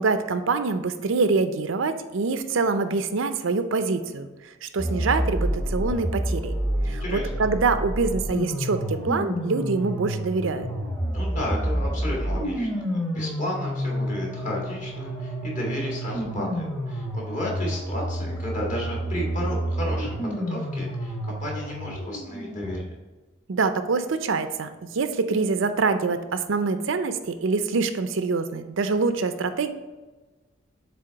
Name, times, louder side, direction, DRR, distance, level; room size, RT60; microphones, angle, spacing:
voice 1, 0.0-4.3 4.6-6.5 6.9-10.7 23.5-29.7, right 4 dB, 75° right, 9 dB, 0.5 m, -25 dB
sound 1, 4.8-22.8, equal, 10° left, 1.0 m, -29 dB
voice 2, 6.8-7.3 11.1-22.9, left 1 dB, 40° left, -3 dB, 1.8 m, -33 dB
7.6 x 3.5 x 4.5 m, 1.2 s
head